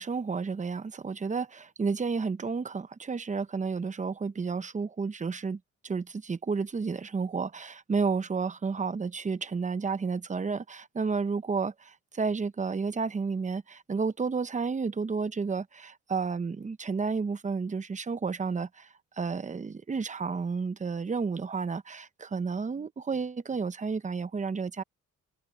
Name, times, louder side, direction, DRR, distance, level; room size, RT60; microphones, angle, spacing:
voice 1, 0.0-24.8, right 5 dB, 25° right, 0.9 m, -31 dB
cardioid pair, 90°, 30 cm